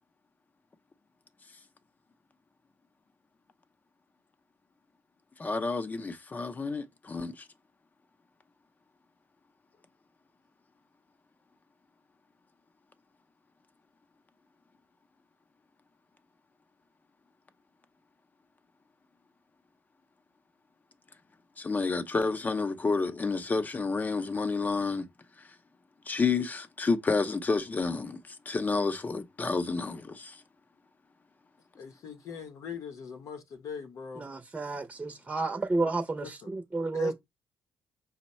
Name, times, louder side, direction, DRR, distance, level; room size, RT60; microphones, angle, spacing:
voice 1, 5.4-7.4 21.6-25.1 26.1-30.4, left 4 dB, 30° left, 0.6 m, -30 dB
voice 2, 31.7-34.3 36.2-36.5 36.9-37.1, left 6 dB, 65° left, 0.7 m, -41 dB
voice 3, 34.2-37.1, right 3 dB, 20° right, 0.7 m, -31 dB
5.3 x 2.1 x 4.2 m
cardioid pair, 85°, 6 cm